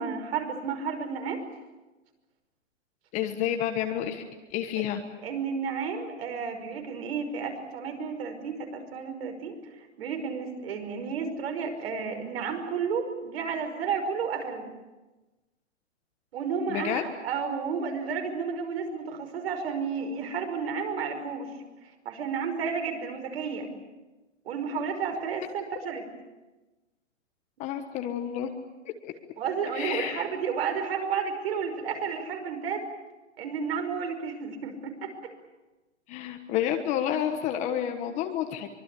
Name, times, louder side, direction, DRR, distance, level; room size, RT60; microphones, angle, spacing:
voice 1, 0.0-1.4 5.2-14.7 16.3-21.5 22.1-23.7 24.5-26.0 29.4-32.9 33.4-35.3, right 6 dB, 50° right, 5 dB, 5.5 m, -32 dB
voice 2, 3.1-4.2 4.5-5.0 16.7-17.0 27.6-28.5 29.0-29.1 29.7-30.3 36.1-38.7, left 10 dB, 20° left, 6 dB, 1.3 m, -29 dB
24.5 x 23.0 x 8.5 m, 1.1 s
hypercardioid pair, 155°, 38 cm